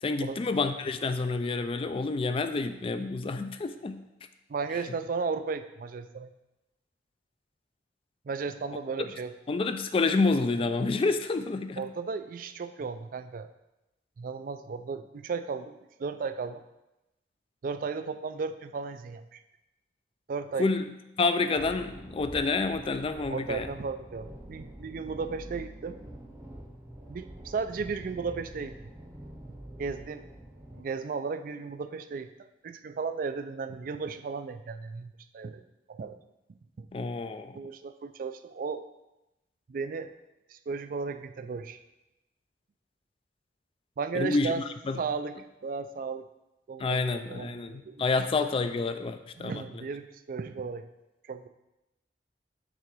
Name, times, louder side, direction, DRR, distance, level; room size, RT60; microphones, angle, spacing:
voice 1, 0.0-4.0 9.0-9.1 9.5-11.9 20.6-20.8 21.2-23.7 36.9-37.6 44.1-45.0 46.8-49.6, left 3 dB, 30° left, 9 dB, 0.3 m, -28 dB
voice 2, 4.5-6.3 8.3-9.3 11.8-13.5 14.2-16.6 17.6-19.4 20.3-20.7 23.3-26.0 27.1-28.8 29.8-30.2 30.7-32.3 32.6-35.6 35.9-36.2 36.8-36.9 37.5-38.8 39.7-40.1 40.5-41.8 44.0-44.6 45.0-45.4 45.6-46.3 46.7-48.1 49.4-50.9 51.3-51.5, right 5 dB, 50° right, 10 dB, 0.3 m, -35 dB
sound 1, 21.5-30.8, right 1 dB, 15° right, 0.7 m, -46 dB
6.1 x 3.7 x 6.0 m, 0.95 s
head